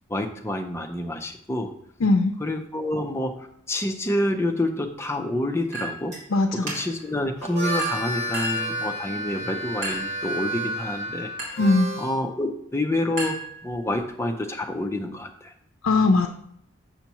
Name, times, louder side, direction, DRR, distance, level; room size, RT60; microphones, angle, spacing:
voice 1, 0.1-1.7 2.4-6.2 6.5-11.6 12.0-13.4 13.6-15.5, left 1 dB, 10° left, 4 dB, 0.5 m, -28 dB
voice 2, 2.0-2.3 6.3-6.7 11.6-11.9 15.8-16.3, left 2 dB, 70° left, 4 dB, 0.5 m, -19 dB
Chink clink, 5.7-6.2 6.7-7.1 7.8-8.8 9.8-10.2 11.4-11.7 13.2-14.0, right 1 dB, 65° right, 2.3 m, -34 dB
Harmonica, 7.3-12.2, right 1 dB, 30° right, 0.9 m, -31 dB
7.0 x 5.8 x 2.9 m, 0.73 s
head